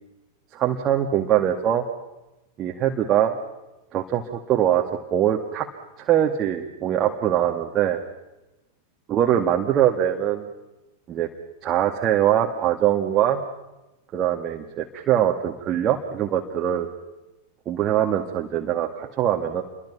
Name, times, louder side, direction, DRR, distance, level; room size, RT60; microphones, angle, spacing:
voice 1, 0.5-1.8 2.6-3.3 3.9-4.8 5.1-5.7 6.0-8.0 9.1-10.5 11.1-11.3 11.6-13.4 14.1-16.9 17.7-19.6, right 11 dB, 30° right, 2 dB, 2.0 m, -22 dB
29.0 x 23.5 x 5.9 m, 1.0 s
figure-of-eight pair, 90°, 0 cm